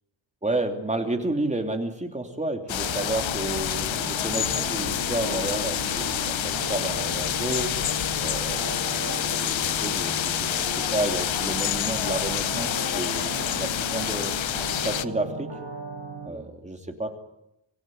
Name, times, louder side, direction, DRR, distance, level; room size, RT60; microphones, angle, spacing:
voice 1, 0.4-7.7 8.2-8.7 9.4-14.4 14.8-15.5 16.2-17.1, right 2 dB, 15° right, 4 dB, 3.0 m, -31 dB
sound 1, 2.7-15.0, left 11 dB, 80° left, 0.9 m, -28 dB
sound 2, 2.8-16.3, right 3 dB, 60° right, 6.3 m, -37 dB
26.0 x 16.5 x 9.3 m, 0.85 s
wide cardioid pair, 130°, 46 cm